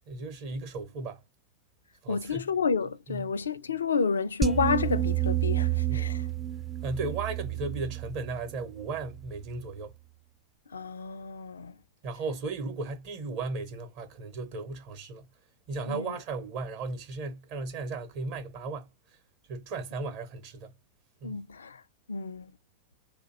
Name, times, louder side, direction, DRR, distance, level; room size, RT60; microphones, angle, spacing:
voice 1, 0.1-1.2 2.0-2.5 3.1-3.4 5.9-6.1 6.8-9.9 12.0-15.3 15.7-18.9 19.5-20.7 21.2-21.4, right 3 dB, 45° right, 0.7 m, -36 dB
voice 2, 2.1-6.2 10.7-11.7 15.9-16.2 21.2-21.8 22.1-22.5, left 5 dB, 70° left, 0.3 m, -30 dB
sound 1, 4.4-9.6, right 11 dB, 15° right, 0.3 m, -30 dB
2.5 x 2.2 x 3.7 m
figure-of-eight pair, 90°, 0 cm